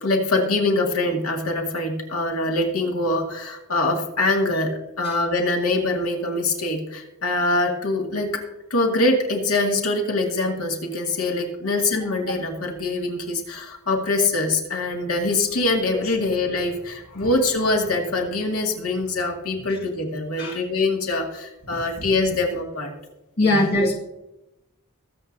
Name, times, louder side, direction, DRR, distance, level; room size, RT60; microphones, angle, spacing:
voice 1, 0.0-4.7 5.0-8.3 8.7-22.9 23.4-23.9, left 2 dB, 75° left, 1 dB, 2.1 m, -24 dB
voice 2, 23.4-23.9, left 1 dB, 45° left, -2 dB, 1.9 m, -21 dB
22.5 x 7.8 x 2.7 m, 0.94 s
head